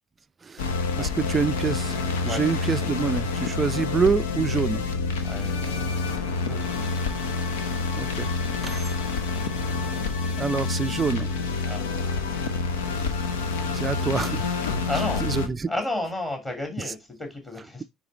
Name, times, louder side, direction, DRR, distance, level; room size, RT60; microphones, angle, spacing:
voice 1, 0.4-4.9 8.0-8.3 8.6-8.9 10.4-11.3 13.7-14.5 15.2-15.7, right 5 dB, 25° right, 0.4 m, -26 dB
sound 1, 0.6-15.5, left 4 dB, 65° left, 0.9 m, -27 dB
voice 2, 2.3-2.9 5.2-6.6 11.6-12.4 14.9-15.2 15.7-17.8, left 2 dB, 20° left, 2.8 m, -34 dB
9.6 x 3.3 x 4.0 m
figure-of-eight pair, 60°, 0 cm